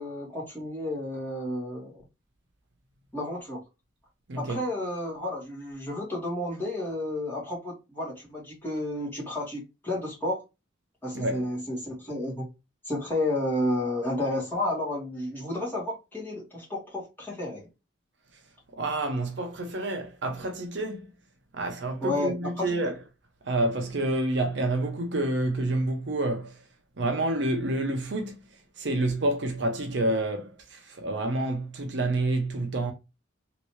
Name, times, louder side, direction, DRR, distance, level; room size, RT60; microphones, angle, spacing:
voice 1, 0.0-2.0 3.1-3.6 4.4-10.4 11.0-12.5 12.8-17.7 22.0-22.9, left 1 dB, 10° left, 1.7 m, -31 dB
voice 2, 4.3-4.6 11.1-11.4 18.7-21.1 21.5-23.0 23.5-26.5 27.0-28.3 28.8-32.9, right 2 dB, 60° right, 0.7 m, -28 dB
3.1 x 2.9 x 3.1 m
head